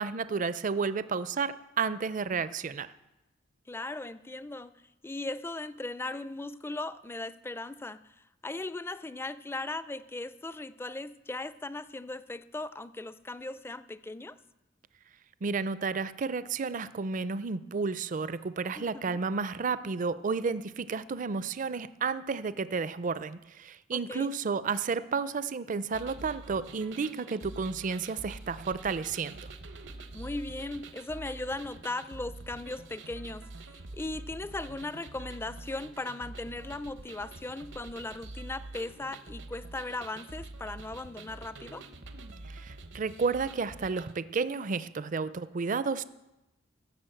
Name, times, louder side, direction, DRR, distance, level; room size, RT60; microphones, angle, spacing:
voice 1, 0.0-2.9 15.4-29.4 42.5-46.0, right 5 dB, 45° right, 15 dB, 0.5 m, -32 dB
voice 2, 3.7-4.8 5.0-8.0 8.4-14.4 18.8-19.2 23.9-24.3 30.1-41.8, left 2 dB, 15° left, 15 dB, 0.4 m, -38 dB
sound 1, 25.9-44.1, right 2 dB, 75° right, 1.0 m, -46 dB
16.0 x 6.3 x 7.8 m, 0.98 s
head